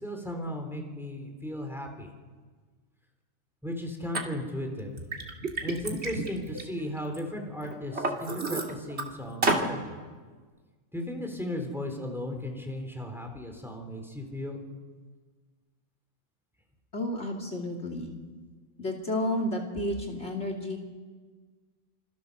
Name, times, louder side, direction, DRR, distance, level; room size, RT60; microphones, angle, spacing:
voice 1, 0.0-2.1 3.6-4.9 5.6-10.0 10.9-14.6, left 1 dB, ahead, 3 dB, 4.0 m, -36 dB
Liquid, 4.1-4.2 4.8-7.2 7.6-9.0 9.4-9.7, right 3 dB, 45° right, 2.8 m, -30 dB
voice 2, 16.9-18.1 18.8-20.8, left 1 dB, 50° left, 3 dB, 3.1 m, -31 dB
27.5 x 25.5 x 7.0 m, 1.5 s
omnidirectional pair, 1.5 m